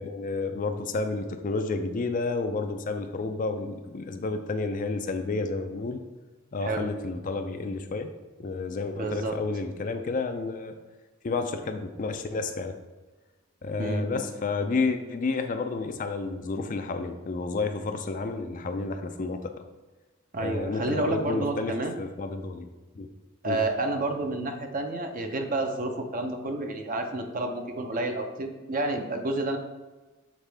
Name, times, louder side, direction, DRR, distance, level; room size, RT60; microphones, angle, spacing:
voice 1, 0.0-6.0 6.5-8.1 8.4-10.7 11.2-12.7 13.6-19.5 20.4-22.7 23.0-23.1 23.4-23.6, left 3 dB, 40° left, 7 dB, 0.4 m, -30 dB
voice 2, 8.9-9.3 13.8-14.3 20.3-22.0 23.4-29.6, right 2 dB, 40° right, 5 dB, 0.6 m, -30 dB
7.3 x 4.1 x 3.4 m, 1.2 s
head